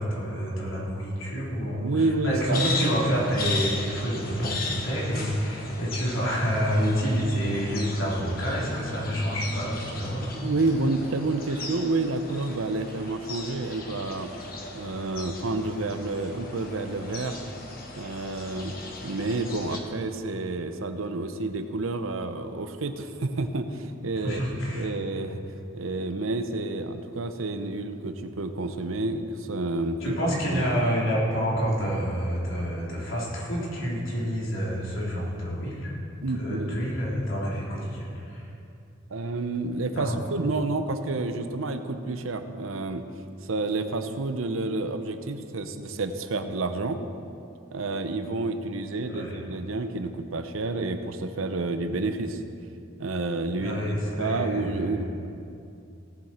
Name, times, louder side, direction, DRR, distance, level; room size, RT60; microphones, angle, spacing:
voice 1, 0.0-10.4 24.1-24.9 30.0-35.9 36.4-38.5 39.9-40.2 49.0-49.4 53.6-55.0, equal, 70° left, -6 dB, 3.3 m, -28 dB
voice 2, 1.8-2.7 10.3-14.3 14.7-17.4 17.9-18.7 19.0-24.4 24.7-25.4 25.7-30.2 30.5-30.7 36.2-36.8 39.1-43.0 43.5-47.0 47.7-52.4 53.0-55.0, right 2 dB, 80° right, 8 dB, 0.8 m, -29 dB
sound 1, 2.5-19.8, left 3 dB, 45° left, 1.3 m, -37 dB
17.5 x 7.5 x 4.4 m, 2.6 s
head